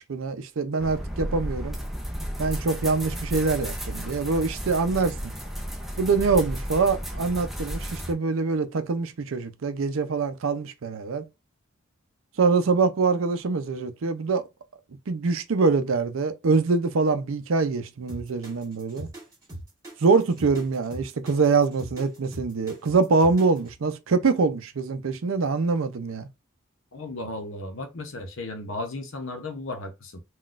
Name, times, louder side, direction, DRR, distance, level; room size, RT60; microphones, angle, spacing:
voice 1, 0.1-1.8 2.4-5.2 6.0-11.2 12.4-14.4 15.1-19.1 20.0-26.3, right 4 dB, 75° right, 0.5 m, -24 dB
sound 1, 0.8-8.1, equal, ahead, 0.4 m, -33 dB
sound 2, 18.1-23.7, right 1 dB, 15° right, 1.4 m, -41 dB
voice 2, 26.9-30.2, left 2 dB, 70° left, 0.8 m, -35 dB
3.8 x 2.3 x 2.4 m
head